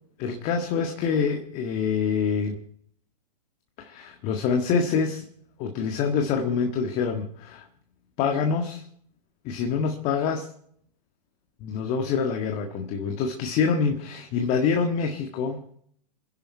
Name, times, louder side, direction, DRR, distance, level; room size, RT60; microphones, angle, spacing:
voice 1, 0.2-2.6 3.8-5.2 5.6-7.7 8.2-8.9 9.4-10.5 11.6-15.6, left 6 dB, 35° left, 5 dB, 1.7 m, -26 dB
28.0 x 10.5 x 4.6 m, 0.66 s
figure-of-eight pair, 115°, 21 cm